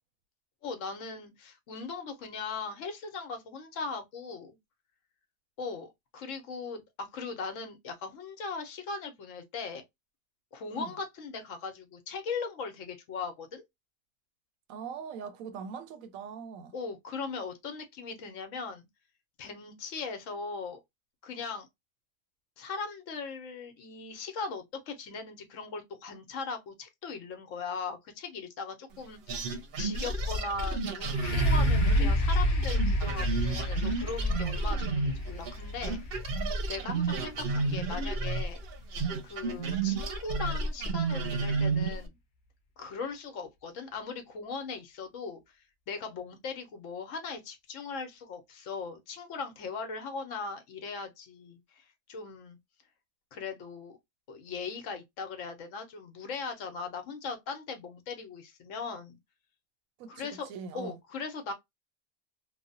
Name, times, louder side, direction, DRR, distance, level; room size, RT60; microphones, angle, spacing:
voice 1, 0.6-4.6 5.6-9.8 10.5-13.6 16.7-18.9 19.4-20.8 21.2-21.7 22.6-36.3 36.7-38.6 39.2-42.2 42.8-45.4 45.9-52.6 53.3-54.0 54.3-59.2 60.1-61.5, left 4 dB, 70° left, 1.1 m, -39 dB
voice 2, 14.7-16.7 60.0-61.0, right 6 dB, 85° right, 1.0 m, -41 dB
sound 1, 29.3-35.6 35.8-42.1, right 3 dB, 60° right, 0.7 m, -31 dB
sound 2, 31.1-38.8 39.5-39.6, equal, 55° left, 0.6 m, -29 dB
3.1 x 2.0 x 2.5 m
omnidirectional pair, 1.4 m